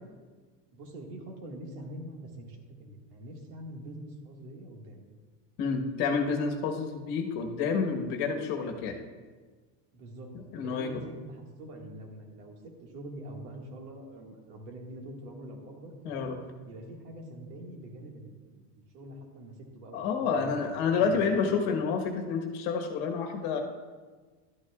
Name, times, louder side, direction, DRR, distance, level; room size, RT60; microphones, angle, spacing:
voice 1, 0.7-5.1 9.9-12.6 12.8-16.3 16.7-18.6 18.9-21.4, right 1 dB, 70° right, 1 dB, 2.0 m, -45 dB
voice 2, 5.6-8.9 10.5-10.9 16.0-16.4 19.9-23.6, left 5 dB, 50° left, 3 dB, 1.3 m, -29 dB
12.5 x 9.1 x 2.4 m, 1.4 s
supercardioid pair, 130°, 48 cm